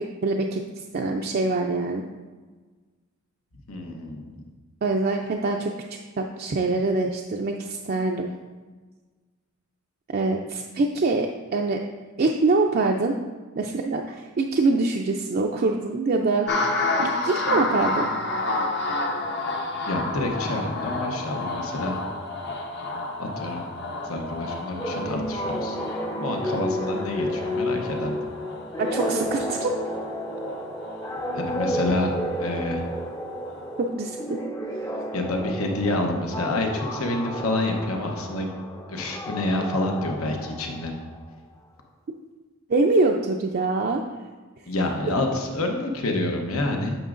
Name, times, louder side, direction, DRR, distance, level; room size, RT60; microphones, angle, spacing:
voice 1, 0.0-2.0 4.8-5.7 6.2-8.3 10.1-11.8 12.2-13.1 13.6-18.1 28.8-29.7 33.8-34.4 34.8-34.9 42.7-44.0, right 3 dB, 45° right, 1 dB, 0.4 m, -24 dB
voice 2, 3.7-4.4 19.9-21.9 23.2-23.7 24.0-25.8 26.2-28.3 31.3-32.1 32.4-32.8 35.1-38.5 38.9-40.9 44.7-47.0, left 2 dB, 85° left, 2 dB, 0.9 m, -28 dB
sound 1, 16.5-33.1 33.4-33.9, left 2 dB, 50° left, 0.8 m, -31 dB
sound 2, 24.8-41.2, equal, 15° left, 0.5 m, -31 dB
9.1 x 6.3 x 2.5 m, 1.4 s
head